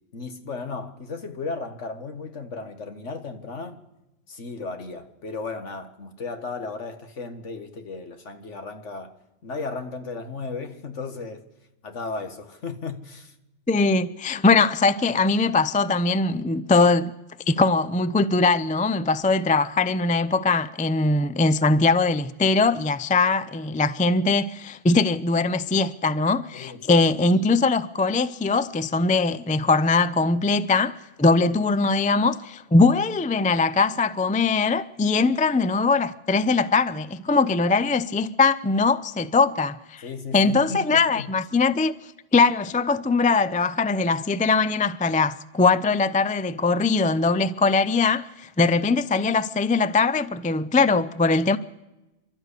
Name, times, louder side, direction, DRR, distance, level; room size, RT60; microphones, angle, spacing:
voice 1, 0.1-3.8 4.3-9.1 9.4-11.5 11.8-13.3 26.5-27.0 40.0-41.3, left 4 dB, 75° left, 1.9 m, -35 dB
voice 2, 13.7-17.1 17.5-40.0 40.3-51.6, left 3 dB, 10° left, 0.3 m, -21 dB
29.0 x 12.5 x 8.3 m
omnidirectional pair, 1.2 m